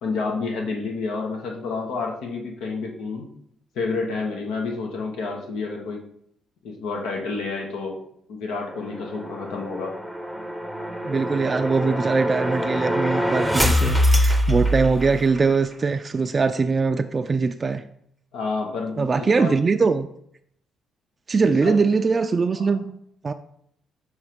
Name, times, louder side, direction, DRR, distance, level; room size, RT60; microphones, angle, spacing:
voice 1, 0.0-3.3 3.7-6.0 6.6-8.0 8.3-9.9 18.3-19.6 21.6-21.8 22.5-22.7, left 4 dB, 90° left, 1.0 m, -29 dB
sound 1, 8.7-15.5, equal, 5° left, 0.7 m, -24 dB
voice 2, 11.0-17.8 19.0-20.1 21.3-23.0 23.2-23.3, right 4 dB, 35° right, 0.3 m, -22 dB
7.1 x 3.2 x 5.0 m
cardioid pair, 90°, 0 cm